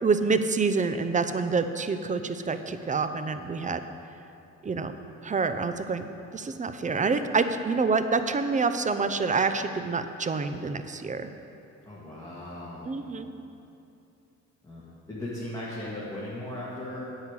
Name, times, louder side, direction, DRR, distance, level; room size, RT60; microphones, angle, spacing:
voice 1, 0.0-3.8 4.6-4.9 5.2-11.3 12.8-13.3, right 4 dB, 25° right, 10 dB, 0.6 m, -27 dB
voice 2, 11.8-13.0 14.6-17.0, left 1 dB, 10° left, -9 dB, 2.3 m, -37 dB
9.3 x 5.7 x 8.3 m, 2.7 s
cardioid pair, 90°, 30 cm